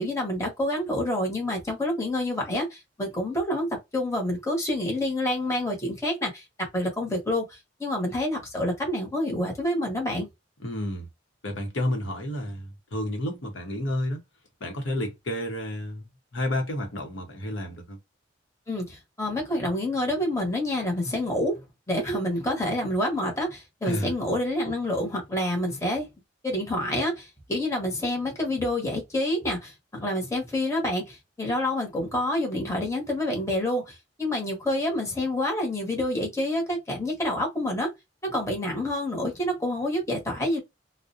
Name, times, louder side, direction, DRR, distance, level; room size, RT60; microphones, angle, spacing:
voice 1, 0.0-3.7 3.9-10.3 18.7-26.1 26.4-37.9 38.2-40.6, left 1 dB, 15° left, 0.9 m, -28 dB
voice 2, 10.6-11.1 11.4-14.2 14.6-16.1 16.3-18.0 23.9-24.1, left 1 dB, 75° left, 0.8 m, -30 dB
2.4 x 2.1 x 2.6 m
head